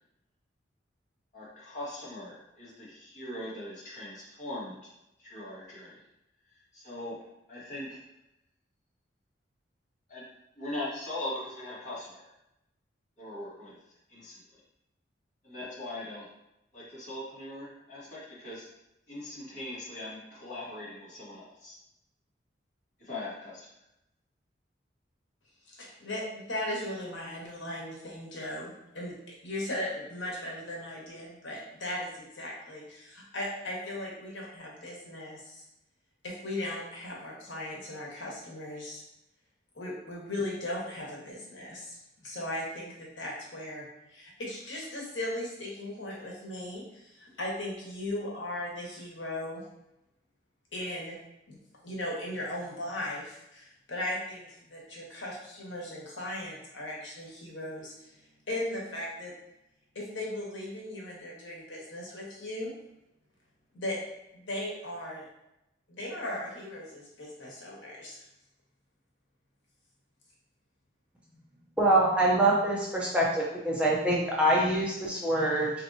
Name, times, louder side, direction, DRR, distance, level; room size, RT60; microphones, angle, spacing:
voice 1, 1.3-4.8 5.2-6.0 6.7-7.2 7.5-8.0 10.1-10.3 10.6-12.3 13.2-13.8 14.1-14.4 15.4-16.3 16.7-18.6 19.1-21.8 23.0-23.7, left 1 dB, 40° left, -7 dB, 1.4 m, -40 dB
voice 2, 25.7-35.6 36.2-39.0 39.7-43.8 44.1-49.6 50.7-51.2 51.5-58.1 58.5-59.3 59.9-62.8 63.7-64.0 64.3-65.3 65.9-68.2, left 1 dB, 80° left, -3 dB, 1.1 m, -37 dB
voice 3, 71.8-75.7, right 1 dB, 5° right, -5 dB, 0.5 m, -25 dB
4.3 x 2.9 x 2.7 m, 0.87 s
head